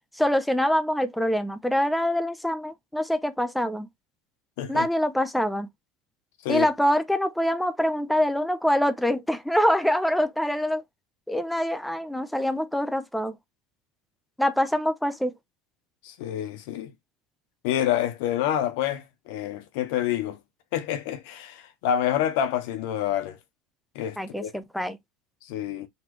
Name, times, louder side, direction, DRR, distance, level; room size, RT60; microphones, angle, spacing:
voice 1, 0.1-3.9 4.7-5.7 6.5-10.8 11.3-13.4 14.4-15.3 24.2-25.0, equal, ahead, 0.4 m, -25 dB
voice 2, 16.0-16.9 17.6-20.4 20.7-23.4 23.9-24.5 25.4-25.9, left 10 dB, 70° left, 1.1 m, -28 dB
4.2 x 3.1 x 3.0 m
cardioid pair, 175°, 0 cm